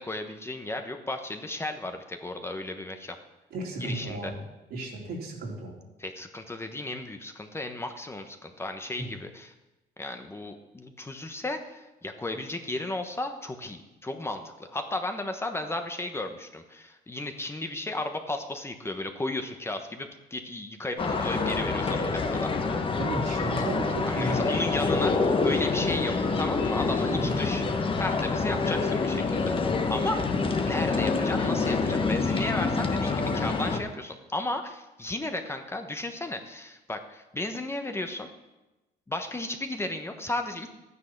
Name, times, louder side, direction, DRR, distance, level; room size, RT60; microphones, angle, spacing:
voice 1, 0.0-3.2 3.8-4.3 6.0-9.5 10.0-22.5 23.6-23.7 24.0-27.6 28.0-30.2 30.6-38.3 39.1-40.7, left 2 dB, 15° left, 5 dB, 1.1 m, -34 dB
voice 2, 3.5-4.4 4.7-5.7 9.0-9.1 23.0-24.5 27.1-27.4, right 2 dB, 70° right, -1 dB, 3.4 m, -34 dB
sound 1, 21.0-33.8, left 4 dB, 30° left, 1.3 m, -27 dB
12.5 x 9.7 x 5.9 m, 1.0 s
cardioid pair, 110°, 17 cm